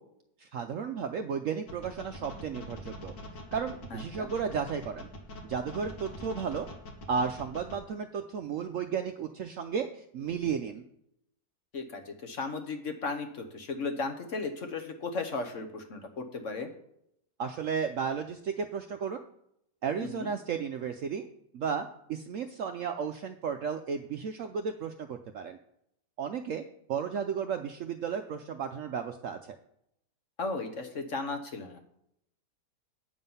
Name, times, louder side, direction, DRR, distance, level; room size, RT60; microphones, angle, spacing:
voice 1, 0.4-3.1 3.5-5.1 5.4-6.7 7.1-10.8 17.4-19.2 19.8-21.3 21.5-25.6 26.2-26.6 26.9-29.4, right 6 dB, 70° right, 6 dB, 0.8 m, -33 dB
sound 1, 1.7-7.7, left 1 dB, 80° left, 2.1 m, -43 dB
voice 2, 3.9-4.3 11.7-16.7 20.0-20.3 30.4-31.8, left 3 dB, 50° left, 5 dB, 1.2 m, -35 dB
8.6 x 7.3 x 5.5 m, 0.76 s
omnidirectional pair, 1.8 m